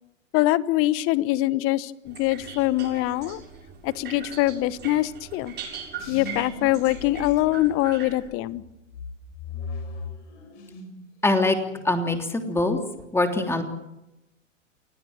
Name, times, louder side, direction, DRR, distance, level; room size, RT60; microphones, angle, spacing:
voice 1, 0.3-3.4 3.8-5.5 6.1-8.6, left 16 dB, 35° left, 18 dB, 1.1 m, -23 dB
sound 1, 2.1-8.3, right 6 dB, 25° right, 7.5 m, -40 dB
sound 2, 6.0-8.0 8.5-11.1 11.4-11.9, left 3 dB, 60° left, 6.6 m, -38 dB
voice 2, 11.2-11.6 11.8-12.8 13.1-13.6, left 2 dB, 5° left, 5 dB, 3.2 m, -23 dB
28.5 x 18.5 x 7.5 m, 0.92 s
hypercardioid pair, 105°, 39 cm